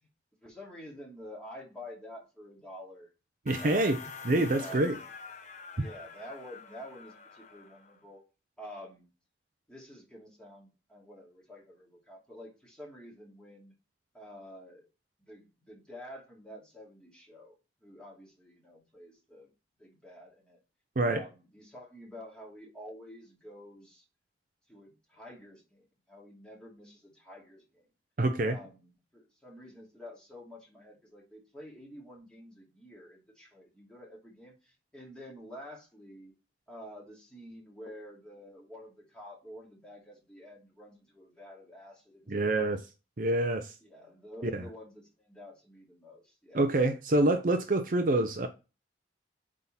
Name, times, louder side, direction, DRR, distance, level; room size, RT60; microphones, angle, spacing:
voice 1, 0.4-3.1 3.6-4.0 4.5-5.0 5.7-8.2 8.6-9.1 9.7-13.7 14.1-14.9 15.2-17.5 17.8-19.5 19.8-20.6 21.0-24.0 24.7-27.9 28.4-36.3 36.7-42.7 43.8-46.7, equal, 5° left, 2.4 m, -49 dB
sound 1, 3.5-8.0, left 5 dB, 45° left, 0.9 m, -46 dB
voice 2, 3.5-4.0 4.2-5.0 21.0-21.2 28.2-28.6 42.3-42.8 43.2-43.7 44.4-44.6 46.5-48.5, right 2 dB, 50° right, 0.7 m, -26 dB
8.0 x 3.7 x 4.2 m
head